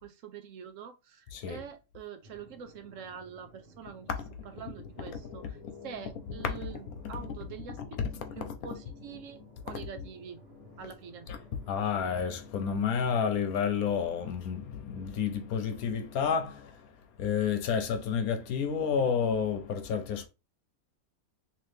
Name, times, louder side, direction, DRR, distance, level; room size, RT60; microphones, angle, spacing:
voice 1, 0.0-4.1 4.6-5.4 5.8-7.8 8.4-9.4 9.6-10.4 10.8-11.3, right 7 dB, 70° right, 0.9 m, -45 dB
voice 2, 1.3-1.6 4.1-4.2 4.6-6.0 6.3-7.3 7.7-8.8 9.1-9.2 9.7-10.1 10.5-10.7 11.3-20.3, left 7 dB, 85° left, 1.2 m, -31 dB
sound 1, 2.2-13.9, right 1 dB, 45° right, 1.2 m, -56 dB
3.1 x 2.9 x 3.2 m
omnidirectional pair, 1.5 m